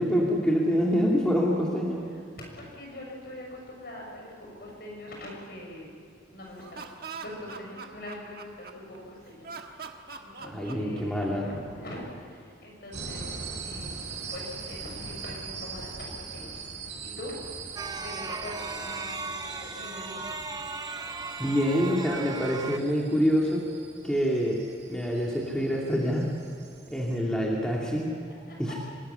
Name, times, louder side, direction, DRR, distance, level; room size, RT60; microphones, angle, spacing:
voice 1, 0.0-2.0 10.5-11.5 21.4-23.7 24.0-24.6 24.9-26.3 26.9-28.1 28.6-28.7, equal, 5° left, -3 dB, 2.5 m, -26 dB
voice 2, 2.1-5.9 6.3-6.9 7.2-9.5 10.2-14.0 14.3-17.4 18.0-20.5 28.2-28.7, left 1 dB, 55° left, -1 dB, 6.5 m, -43 dB
Laughter, 6.5-9.0 9.4-11.5, right 5 dB, 55° right, 1.5 m, -42 dB
sound 1, 12.9-27.2, right 4 dB, 70° right, 4.5 m, -41 dB
sound 2, 17.8-22.8, right 4 dB, 20° right, 0.6 m, -37 dB
24.5 x 14.0 x 10.0 m, 2.4 s
head